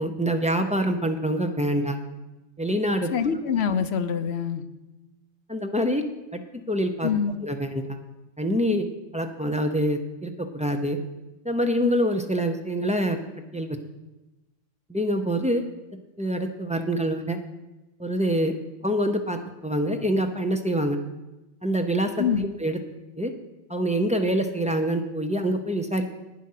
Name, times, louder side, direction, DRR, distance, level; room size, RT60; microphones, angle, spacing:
voice 1, 0.0-2.0 2.6-3.1 5.5-6.0 6.3-6.4 6.7-7.1 7.4-8.0 8.4-8.9 9.1-11.0 11.4-13.2 13.5-13.8 14.9-15.7 16.2-17.4 18.0-18.5 18.8-21.0 21.6-22.2 22.6-22.8 23.2-23.3 23.7-26.1, equal, 5° right, 5 dB, 0.7 m, -25 dB
voice 2, 3.1-4.6 7.0-7.4 22.2-22.4, left 7 dB, 65° left, 11 dB, 0.9 m, -25 dB
11.5 x 9.1 x 5.7 m, 1.0 s
omnidirectional pair, 1.3 m